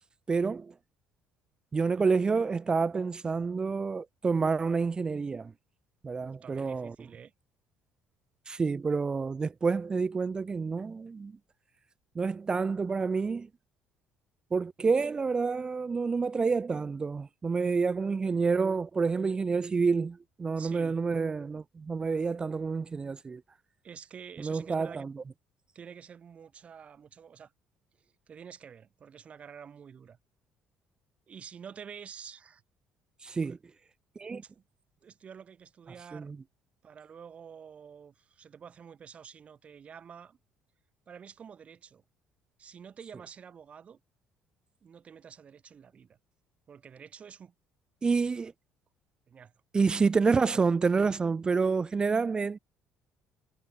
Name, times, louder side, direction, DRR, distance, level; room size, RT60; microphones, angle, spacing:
voice 1, 0.3-0.7 1.7-5.5 6.0-7.0 8.5-11.3 12.2-13.5 14.5-23.4 24.4-25.1 33.2-33.6 34.2-34.4 36.1-36.4 48.0-48.5 49.7-52.6, right 4 dB, 25° right, 0.3 m, -28 dB
voice 2, 6.2-7.3 20.6-21.0 23.8-25.0 25.7-27.5 28.0-30.2 31.3-32.6 33.4-33.6 34.3-34.6 35.0-36.3 36.8-40.4 41.1-42.0 42.6-44.0 44.8-46.2 46.7-47.5 49.3-49.5, right 7 dB, 45° right, 1.6 m, -49 dB
supercardioid pair, 80°, 3 cm